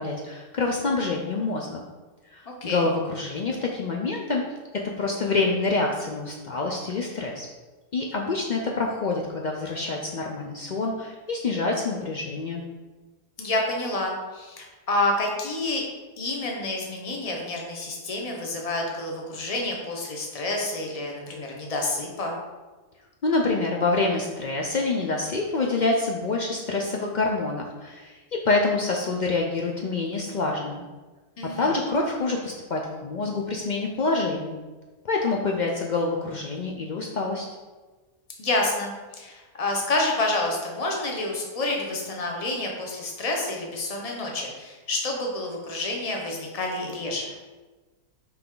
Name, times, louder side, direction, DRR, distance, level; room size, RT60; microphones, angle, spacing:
voice 1, 0.0-1.8 2.3-4.4 5.0-7.5 7.9-12.6 23.2-30.9 31.6-34.6 35.0-37.5, left 3 dB, 75° left, 0 dB, 0.4 m, -26 dB
voice 2, 2.5-2.9 13.4-15.8 16.2-22.4 31.4-31.7 38.4-47.3, left 2 dB, 25° left, 0 dB, 1.0 m, -28 dB
5.8 x 5.2 x 3.8 m, 1.2 s
omnidirectional pair, 1.6 m